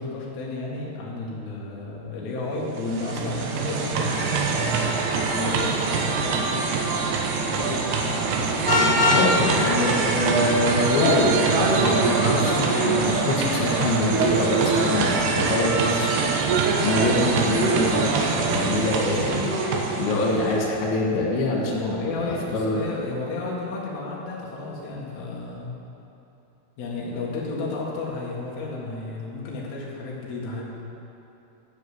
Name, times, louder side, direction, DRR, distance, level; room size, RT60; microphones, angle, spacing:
voice 1, 0.0-4.7 5.3-6.7 7.3-7.8 8.6-9.6 21.5-25.8 26.8-30.7, left 3 dB, 50° left, -4 dB, 2.6 m, -32 dB
sound 1, 2.6-20.7, right 4 dB, 75° right, 2.9 m, -24 dB
Vehicle horn car horn honking, 8.6-9.3, left 2 dB, 15° right, 1.5 m, -19 dB
voice 2, 9.1-16.3 16.8-19.5 20.0-22.0 22.3-22.9, left 2 dB, 90° left, -2 dB, 3.9 m, -24 dB
12.0 x 6.2 x 8.2 m, 3.0 s
omnidirectional pair, 5.1 m